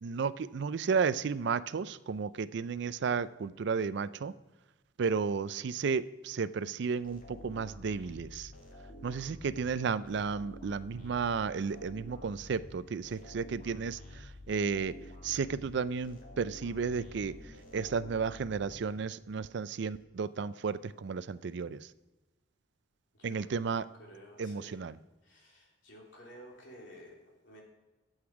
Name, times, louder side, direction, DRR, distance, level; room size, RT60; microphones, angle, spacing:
voice 1, 0.0-4.3 5.0-8.5 9.0-14.9 15.2-21.9 23.2-23.9 24.4-25.0, right 5 dB, 65° right, 16 dB, 0.4 m, -33 dB
sound 1, 7.0-19.3, left 1 dB, 45° left, 2.1 m, -50 dB
voice 2, 8.8-9.3 23.1-23.4 24.0-24.8 25.2-27.6, equal, 85° left, -2 dB, 3.1 m, -53 dB
12.0 x 8.0 x 4.7 m, 1.1 s
head